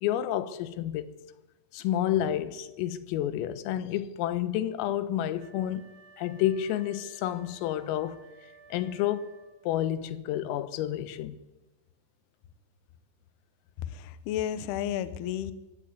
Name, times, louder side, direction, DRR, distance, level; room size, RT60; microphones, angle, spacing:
voice 1, 0.0-1.1 1.7-5.9 6.2-8.2 8.7-9.3 9.7-11.4, left 11 dB, 90° left, 3.8 m, -30 dB
Wind instrument woodwind instrument, 5.4-9.8, right 5 dB, 85° right, 4.5 m, -55 dB
voice 2, 13.8-15.5, left 10 dB, 70° left, 2.5 m, -32 dB
22.5 x 17.0 x 9.6 m
omnidirectional pair, 5.9 m